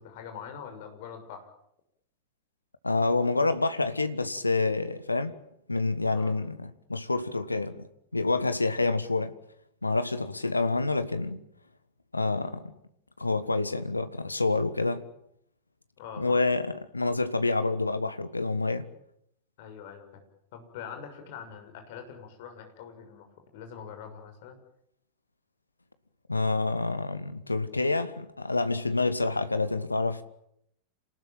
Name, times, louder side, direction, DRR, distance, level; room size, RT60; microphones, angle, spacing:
voice 1, 0.0-1.5 6.1-6.3 16.0-16.4 19.6-20.2 20.5-23.3 23.5-24.6, left 7 dB, 50° left, 6.6 m, -43 dB
voice 2, 2.8-5.3 5.7-7.8 8.1-9.3 9.8-11.4 12.1-12.7 13.2-15.0 16.2-18.9 26.3-30.2, left 3 dB, 80° left, 1.5 m, -27 dB
28.0 x 19.5 x 9.1 m
figure-of-eight pair, 90°, 0 cm